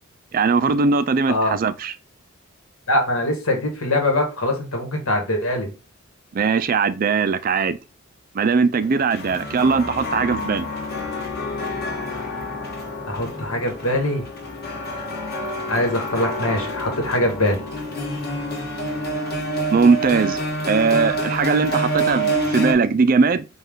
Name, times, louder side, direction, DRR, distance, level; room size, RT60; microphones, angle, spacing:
voice 1, 0.3-1.9 6.3-7.8 8.3-10.7 19.7-20.4 20.7-23.4, right 4 dB, 40° right, 0.3 m, -19 dB
voice 2, 2.9-5.7 13.1-14.2 15.7-17.6 22.4-22.6, left 1 dB, 75° left, 1.6 m, -22 dB
sound 1, 8.8-22.7, equal, 45° left, 1.5 m, -27 dB
5.4 x 2.4 x 3.6 m
head